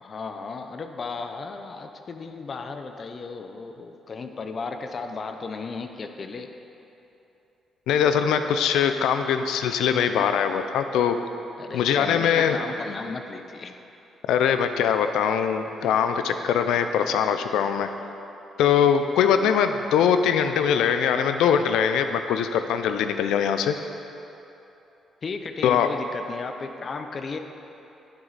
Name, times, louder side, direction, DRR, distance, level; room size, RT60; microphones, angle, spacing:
voice 1, 0.0-6.5 11.6-13.8 15.8-15.9 25.2-27.4, left 4 dB, 45° left, 6 dB, 0.6 m, -35 dB
voice 2, 7.9-11.1 11.7-12.6 14.3-17.9 18.6-23.8 25.6-25.9, left 8 dB, 85° left, 8 dB, 0.5 m, -22 dB
9.8 x 7.4 x 4.1 m, 2.9 s
cardioid pair, 90°, 0 cm